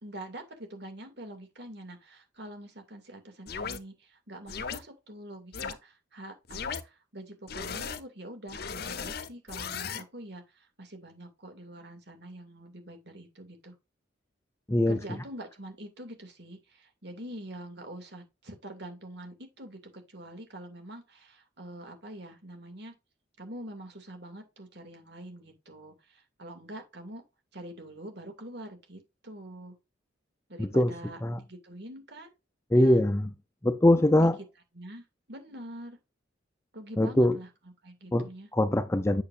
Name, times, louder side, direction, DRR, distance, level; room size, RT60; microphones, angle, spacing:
voice 1, 0.0-13.8 14.9-22.9 23.4-27.2 27.5-29.7 30.5-32.3 32.7-33.0 33.9-34.3 34.7-36.0 36.7-38.5, right 1 dB, 60° right, 2.5 m, -45 dB
sound 1, 3.5-3.8 4.5-4.8 5.5-5.7 6.5-6.8 7.5-8.0 8.5-10.0, left 6 dB, 55° left, 0.8 m, -36 dB
voice 2, 30.6-30.9 31.2-31.4 32.7-33.3 33.6-34.4 37.0-37.4 38.1-38.3 38.5-39.2, left 1 dB, 15° left, 0.6 m, -22 dB
8.5 x 6.8 x 2.6 m
head